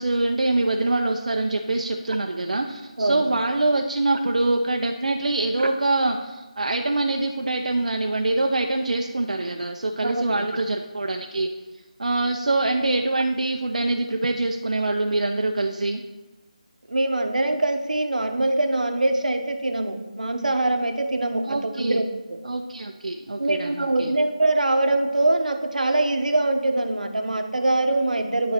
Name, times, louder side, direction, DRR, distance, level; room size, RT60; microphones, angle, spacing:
voice 1, 0.0-11.5 12.0-16.0 21.4-22.0 22.4-24.1, right 2 dB, 70° right, 3 dB, 0.6 m, -24 dB
voice 2, 16.9-22.1 23.4-28.5, right 2 dB, 90° right, 6 dB, 1.0 m, -23 dB
10.5 x 4.1 x 4.4 m, 1.2 s
figure-of-eight pair, 175°, 4 cm